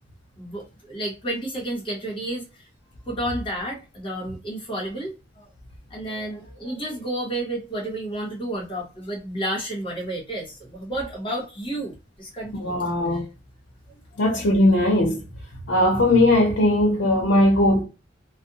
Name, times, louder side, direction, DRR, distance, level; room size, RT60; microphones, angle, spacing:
voice 1, 0.4-2.7 3.1-5.5 5.9-12.8 13.1-13.2, right 1 dB, 25° left, 1.1 m, -31 dB
voice 2, 12.6-13.3 14.2-15.2 15.7-17.8, left 1 dB, 75° left, 0.7 m, -19 dB
2.5 x 2.1 x 2.7 m
head